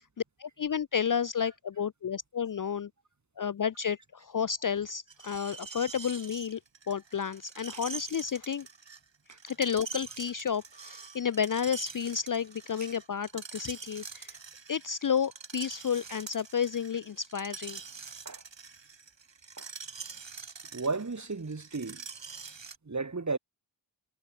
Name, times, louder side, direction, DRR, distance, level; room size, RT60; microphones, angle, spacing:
voice 1, 0.4-2.9 3.4-6.6 6.9-8.7 9.5-14.3 14.7-17.8, left 7 dB, 40° left, 0.5 m, -31 dB
Screech, 5.1-22.8, right 5 dB, 60° right, 5.1 m, -45 dB
voice 2, 20.7-22.0 22.8-23.4, right 3 dB, 35° right, 2.5 m, -34 dB
wide cardioid pair, 90°, 49 cm